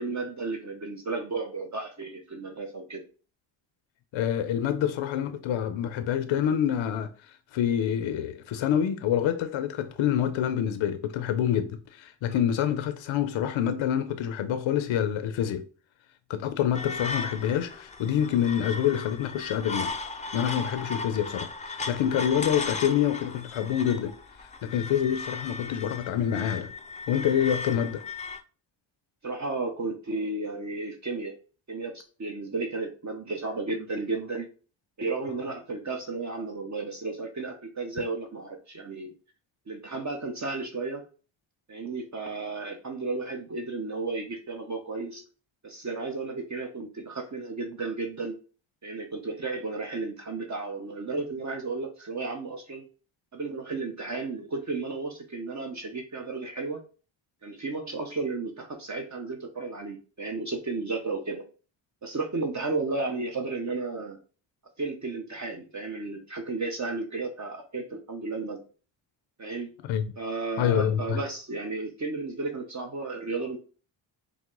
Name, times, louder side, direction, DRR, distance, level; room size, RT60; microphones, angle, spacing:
voice 1, 0.0-3.0 29.2-31.3 31.7-34.5 35.0-39.1 39.7-41.1 41.7-45.2 45.6-48.4 48.8-52.8 53.3-56.8 57.4-61.4 62.0-64.2 64.8-68.6 69.4-69.7 70.2-73.6, right 3 dB, 35° right, 0.8 m, -33 dB
voice 2, 4.1-15.7 16.3-19.9 20.3-24.2 24.6-26.7 27.1-28.0 69.8-70.0 70.6-71.2, left 9 dB, 80° left, 0.6 m, -27 dB
sound 1, 16.7-28.4, left 3 dB, 15° left, 0.3 m, -36 dB
4.7 x 2.1 x 3.7 m
cardioid pair, 75°, 47 cm